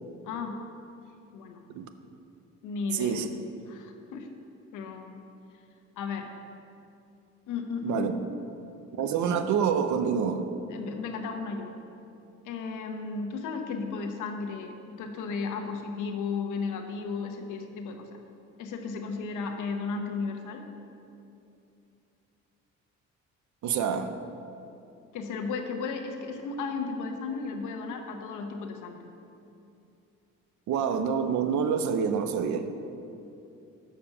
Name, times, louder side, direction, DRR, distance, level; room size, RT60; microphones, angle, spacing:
voice 1, 0.2-0.6 1.3-1.6 2.6-3.2 3.7-4.3 4.7-5.2 6.0-6.3 7.5-8.1 10.7-11.7 12.4-18.1 18.6-20.6 25.1-29.0, left 5 dB, 85° left, 4 dB, 0.9 m, -34 dB
voice 2, 2.9-3.3 7.8-8.1 9.0-10.5 23.6-24.2 30.7-32.7, right 7 dB, 70° right, 9 dB, 0.7 m, -27 dB
6.7 x 5.1 x 7.1 m, 2.7 s
cardioid pair, 90°, 30 cm